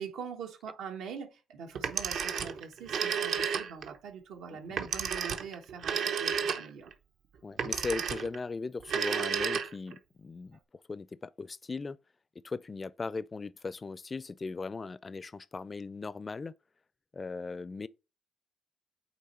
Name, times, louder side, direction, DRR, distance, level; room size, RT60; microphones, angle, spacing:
voice 1, 0.0-6.9, right 6 dB, 90° right, 1.3 m, -43 dB
Telephone, 1.8-4.0 4.8-6.9 7.6-8.4 8.8-10.0, right 7 dB, 70° right, 0.8 m, -32 dB
voice 2, 7.4-10.6 10.9-12.0 12.4-16.5 17.1-17.9, left 4 dB, 30° left, 0.4 m, -38 dB
8.4 x 3.1 x 4.3 m
cardioid pair, 90°, 0 cm